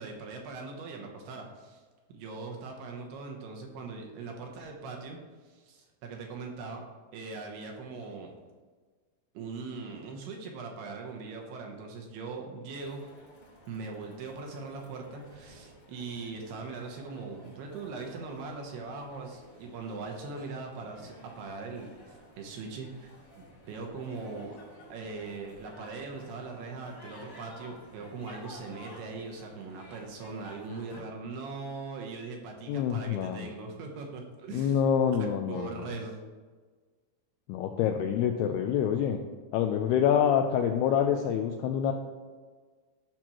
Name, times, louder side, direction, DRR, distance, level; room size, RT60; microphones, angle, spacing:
voice 1, 0.0-1.8 2.1-5.2 5.4-6.8 7.1-8.3 9.3-13.0 13.7-24.6 24.9-34.8 35.5-36.2, right 4 dB, 75° right, 1 dB, 2.7 m, -40 dB
sound 1, 12.8-31.0, equal, 35° left, 1.4 m, -52 dB
voice 2, 32.7-33.5 34.5-35.8 37.5-39.2 39.5-41.9, left 8 dB, 85° left, 4 dB, 2.3 m, -26 dB
14.0 x 6.0 x 3.0 m, 1.4 s
omnidirectional pair, 5.1 m